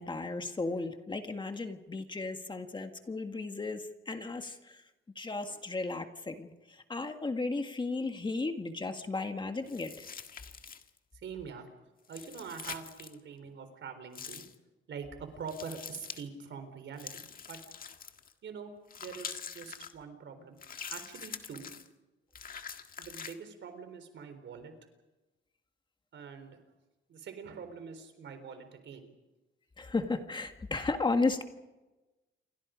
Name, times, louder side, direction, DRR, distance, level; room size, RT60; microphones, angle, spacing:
voice 1, 0.0-4.8 5.2-10.1 29.8-31.4, left 3 dB, 25° left, 6 dB, 1.8 m, -34 dB
sound 1, 9.7-11.0 12.0-13.2 14.1-14.6 15.5-16.2 17.0-18.3 18.9-19.9 20.6-21.9 22.3-23.4, left 6 dB, 45° left, 1.7 m, -44 dB
voice 2, 11.1-11.7 12.1-14.4 14.9-17.6 18.4-18.7 19.0-20.6 20.9-21.7 23.0-24.7 26.1-26.6 27.1-29.1, right 6 dB, 70° right, 8 dB, 4.0 m, -44 dB
28.5 x 24.5 x 5.2 m, 1.1 s
wide cardioid pair, 140°, 20 cm